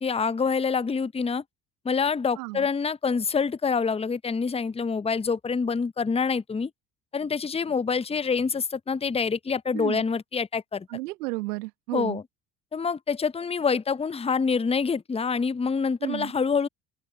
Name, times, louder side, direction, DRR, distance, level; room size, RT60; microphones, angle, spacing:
voice 1, 0.0-1.4 1.8-6.7 7.1-10.9 11.9-12.2 12.7-16.7, left 5 dB, 15° left, 0.7 m, -26 dB
voice 2, 2.3-2.7 9.7-10.0 10.9-12.2 16.0-16.3, right 22 dB, 75° right, 1.9 m, -33 dB
open air
figure-of-eight pair, 55°, 47 cm